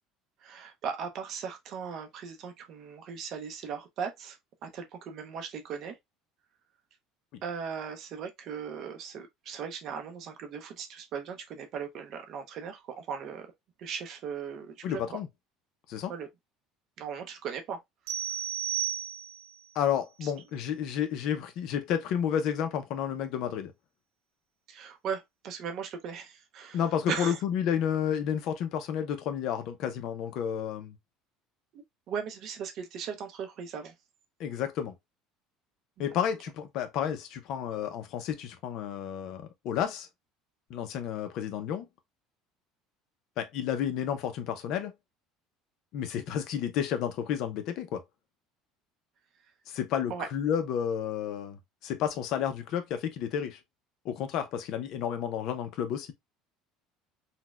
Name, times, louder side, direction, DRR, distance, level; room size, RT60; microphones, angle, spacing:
voice 1, 0.4-6.0 7.4-13.5 13.8-15.2 16.1-16.3 17.0-17.8 18.0-18.4 20.2-20.3 24.7-27.4 31.7-33.9 36.0-36.2 50.1-50.3, right 6 dB, 50° right, 0.6 m, -38 dB
voice 2, 14.8-15.3 15.9-16.1 19.7-23.7 26.7-31.0 34.4-34.9 36.0-40.1 40.7-41.9 43.4-44.9 45.9-48.0 49.7-53.6 54.0-56.1, left 9 dB, 60° left, 0.5 m, -31 dB
sound 1, 18.1-19.6, right 10 dB, 90° right, 0.8 m, -33 dB
4.0 x 2.1 x 2.3 m
cardioid pair, 135°, 0 cm